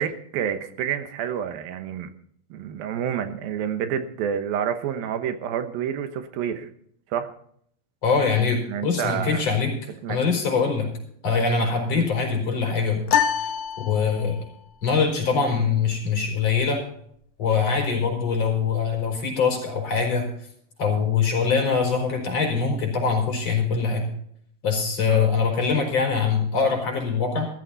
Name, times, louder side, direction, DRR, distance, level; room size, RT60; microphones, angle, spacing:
voice 1, 0.0-2.1 2.5-6.7 7.1-7.3 8.7-9.4 10.0-10.2 11.9-12.1 25.1-25.3, right 8 dB, 80° right, 8 dB, 3.0 m, -28 dB
voice 2, 8.0-9.7 10.1-10.9 11.2-13.0 13.4-13.5 13.8-14.4 14.8-16.8 17.4-20.3 20.8-24.1 24.6-27.5, left 5 dB, 45° left, 2 dB, 5.3 m, -23 dB
sound 1, 13.1-14.6, left 8 dB, 75° left, 1.9 m, -25 dB
15.5 x 14.0 x 4.0 m, 0.65 s
omnidirectional pair, 4.1 m